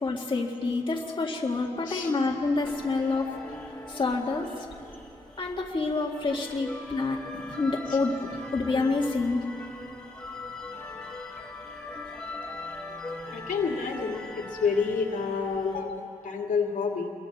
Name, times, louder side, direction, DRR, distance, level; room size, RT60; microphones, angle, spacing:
voice 1, 0.0-3.3 3.9-4.7 5.4-9.5, left 3 dB, 35° left, -2 dB, 2.0 m, -28 dB
sound 1, 2.6-15.8, left 2 dB, 5° left, 2.9 m, -41 dB
voice 2, 13.3-17.1, left 5 dB, 75° left, 1 dB, 2.3 m, -29 dB
28.0 x 23.0 x 4.3 m, 2.4 s
wide cardioid pair, 115°, 14 cm